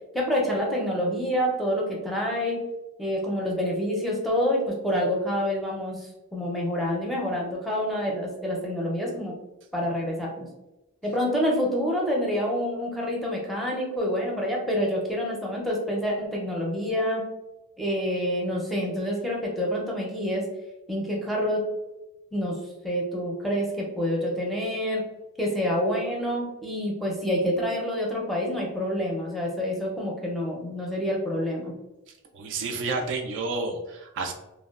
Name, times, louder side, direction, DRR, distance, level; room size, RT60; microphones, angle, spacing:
voice 1, 0.1-2.6 3.0-9.4 9.7-10.5 11.0-17.2 17.8-20.4 20.9-21.6 22.3-22.6 22.8-25.0 25.4-31.7, equal, ahead, -3 dB, 0.5 m, -27 dB
voice 2, 32.3-34.3, right 3 dB, 55° right, 3 dB, 0.3 m, -30 dB
2.9 x 2.1 x 2.3 m, 0.97 s
head